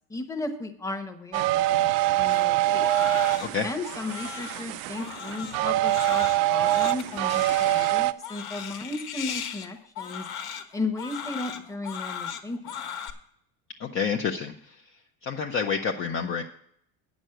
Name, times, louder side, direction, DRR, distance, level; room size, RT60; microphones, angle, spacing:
voice 1, 0.1-1.9 2.1-2.9 3.6-10.3 10.7-12.9, left 2 dB, 5° left, 5 dB, 1.0 m, -35 dB
sound 1, 1.3-8.1, right 15 dB, 85° right, 0.6 m, -24 dB
Crying sobbing, 2.3-13.1, left 8 dB, 60° left, 1.4 m, -38 dB
voice 2, 13.8-14.9 15.2-16.4, left 6 dB, 30° left, 3 dB, 0.6 m, -29 dB
9.2 x 6.2 x 7.8 m, 0.67 s
cardioid pair, 145°, 42 cm